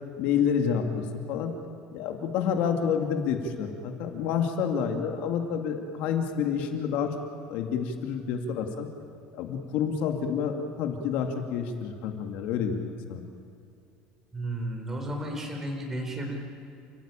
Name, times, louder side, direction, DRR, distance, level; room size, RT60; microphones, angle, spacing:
voice 1, 0.2-1.5 1.9-7.1 7.5-8.9 9.3-13.2, left 7 dB, 60° left, 4 dB, 2.4 m, -29 dB
voice 2, 14.3-16.4, right 1 dB, 15° right, 2 dB, 3.9 m, -33 dB
29.0 x 15.5 x 8.9 m, 2.4 s
cardioid pair, 160°, 3 cm